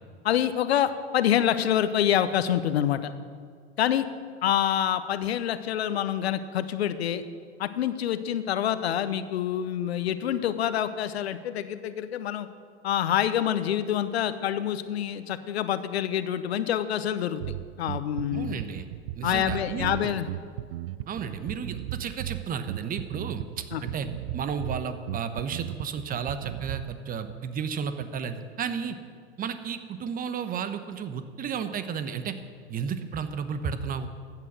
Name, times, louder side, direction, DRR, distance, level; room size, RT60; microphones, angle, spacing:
voice 1, 0.2-3.1 3.8-4.0 4.4-7.2 7.6-12.5 12.8-17.4 17.8-18.6 19.2-20.3 23.7-23.8, left 10 dB, 70° left, 13 dB, 0.9 m, -26 dB
Bass guitar, 17.4-27.0, right 14 dB, 55° right, 0.5 m, -36 dB
voice 2, 18.3-18.9 19.2-20.2 21.1-24.1 24.3-29.0 29.4-32.4 32.7-34.1, right 6 dB, 25° right, 11 dB, 1.0 m, -33 dB
14.5 x 8.9 x 6.3 m, 2.1 s
hypercardioid pair, 95°, 33 cm